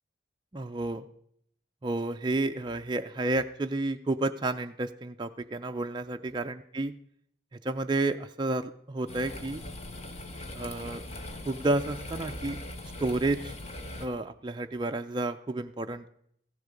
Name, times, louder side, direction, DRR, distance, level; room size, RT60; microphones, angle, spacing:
voice 1, 0.5-1.0 1.8-6.9 7.6-9.6 10.5-11.0 11.5-12.6 13.0-13.5 14.0-16.1, right 2 dB, 25° right, 6 dB, 0.4 m, -31 dB
sound 1, 9.1-14.1, left 1 dB, 35° left, 0.9 m, -40 dB
15.0 x 6.7 x 5.0 m, 0.68 s
head